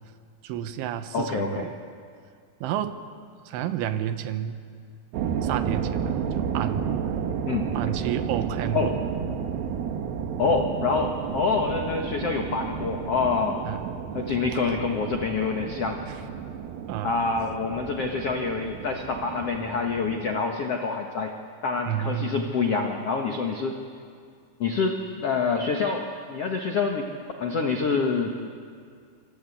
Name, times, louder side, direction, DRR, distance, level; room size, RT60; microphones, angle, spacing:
voice 1, 0.4-1.8 2.6-3.0 3.5-4.6 5.4-6.9 7.8-8.9 10.4-10.5 13.7-14.0 14.5-14.6 16.1-16.2 16.9-17.2 21.9-22.4, right 10 dB, 85° right, 9 dB, 3.6 m, -30 dB
voice 2, 1.1-1.7 7.5-7.6 8.7-8.9 10.4-13.6 14.1-16.0 17.0-21.3 21.6-23.7 24.6-27.1 27.4-28.3, left 4 dB, 85° left, 3 dB, 1.3 m, -26 dB
sound 1, 5.1-20.3, right 7 dB, 65° right, 2.8 m, -32 dB
26.5 x 25.0 x 8.6 m, 2.2 s
omnidirectional pair, 5.4 m